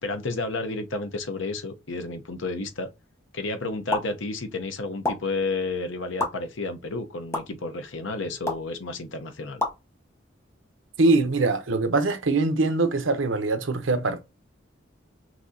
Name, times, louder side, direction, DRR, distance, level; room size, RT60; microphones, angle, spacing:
voice 1, 0.0-2.9 3.3-9.6, left 3 dB, 75° left, 0.8 m, -31 dB
sound 1, 3.9-4.1 5.0-5.1 6.2-6.3 7.3-7.4 8.5-8.7 9.6-9.7, left 2 dB, 15° left, 0.9 m, -26 dB
voice 2, 11.0-14.2, right 3 dB, 80° right, 0.7 m, -23 dB
5.9 x 2.7 x 2.7 m
head